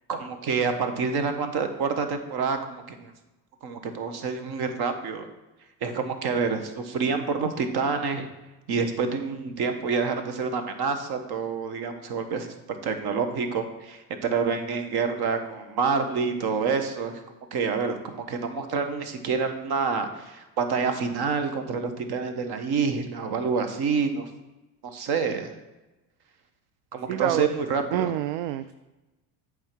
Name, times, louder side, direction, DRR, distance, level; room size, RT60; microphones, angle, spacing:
voice 1, 0.1-3.1 3.6-5.3 5.8-8.3 8.7-12.5 12.8-17.2 17.5-24.3 24.8-25.5 26.9-28.1, right 5 dB, 50° right, 7 dB, 1.3 m, -27 dB
voice 2, 27.1-27.5 27.9-28.7, right 12 dB, 65° right, 12 dB, 0.5 m, -27 dB
8.8 x 3.7 x 6.1 m, 1.1 s
hypercardioid pair, 70°, 49 cm